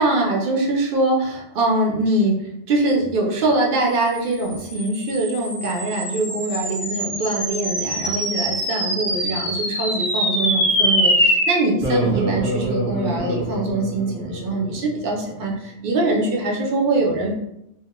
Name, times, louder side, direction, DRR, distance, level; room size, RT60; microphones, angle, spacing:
voice 1, 0.0-17.3, right 2 dB, 55° right, -1 dB, 0.7 m, -23 dB
sound 1, 4.4-15.0, equal, 15° right, 0.4 m, -24 dB
2.3 x 2.2 x 2.9 m, 0.83 s
omnidirectional pair, 1.2 m